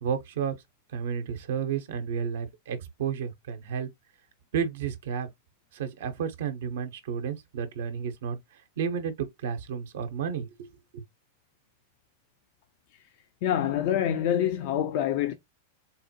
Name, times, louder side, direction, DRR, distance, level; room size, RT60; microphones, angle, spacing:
voice 1, 0.0-0.6 0.9-3.9 4.5-5.3 5.7-11.0, right 7 dB, 70° right, 0.6 m, -32 dB
voice 2, 13.4-15.3, left 10 dB, 55° left, 0.4 m, -26 dB
3.8 x 2.1 x 2.7 m
hypercardioid pair, 100°, 0 cm